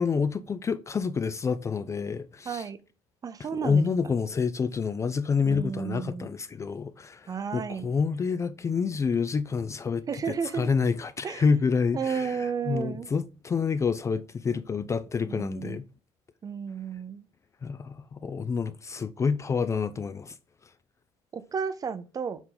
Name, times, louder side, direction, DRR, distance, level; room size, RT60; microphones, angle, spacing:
voice 1, 0.0-2.6 3.6-15.9 17.6-20.4, left 5 dB, 25° left, 0.4 m, -28 dB
voice 2, 2.5-2.8 3.2-3.8 5.4-6.3 7.3-7.9 10.1-10.7 11.2-11.4 11.9-13.1 15.3-15.8 16.4-17.3 21.3-22.4, right 6 dB, 30° right, 0.6 m, -32 dB
7.0 x 3.7 x 3.9 m
cardioid pair, 115°, 12 cm